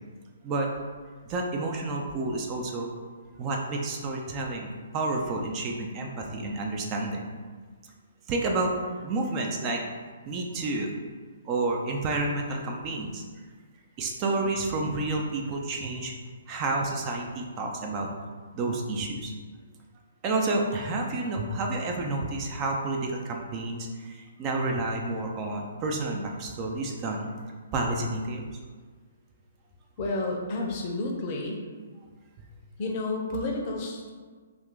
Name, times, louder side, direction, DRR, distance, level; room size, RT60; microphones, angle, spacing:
voice 1, 1.3-2.9 3.4-7.3 8.3-8.7 9.0-9.8 10.3-10.9 11.4-13.2 14.0-16.1 16.5-18.1 18.5-19.3 20.2-27.3 27.7-28.5, right 2 dB, 30° right, 1 dB, 0.4 m, -30 dB
voice 2, 30.0-31.6 32.8-34.1, left 2 dB, 40° left, 0 dB, 0.6 m, -30 dB
2.4 x 2.3 x 3.6 m, 1.5 s
hypercardioid pair, 130°, 0 cm